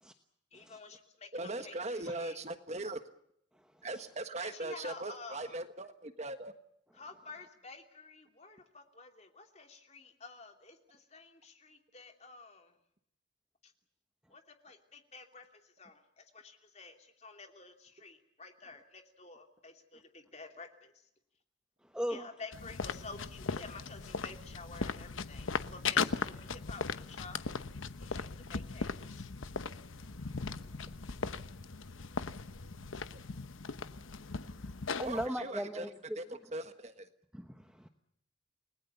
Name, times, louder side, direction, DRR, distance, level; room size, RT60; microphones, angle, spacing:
voice 1, 0.5-2.4 4.4-5.6 6.9-12.7 13.6-13.7 14.3-20.9 22.1-27.4 28.0-29.3, left 4 dB, 35° left, 4 dB, 2.8 m, -51 dB
voice 2, 1.3-3.0 3.8-6.5 35.0-35.9 36.1-37.1, right 2 dB, 35° right, 9 dB, 1.4 m, -39 dB
voice 3, 21.9-22.3 35.0-35.9 37.3-37.9, equal, 5° right, 5 dB, 1.1 m, -38 dB
sound 1, 22.5-35.3, left 5 dB, 90° left, 1.0 m, -38 dB
29.5 x 20.0 x 7.0 m, 0.74 s
head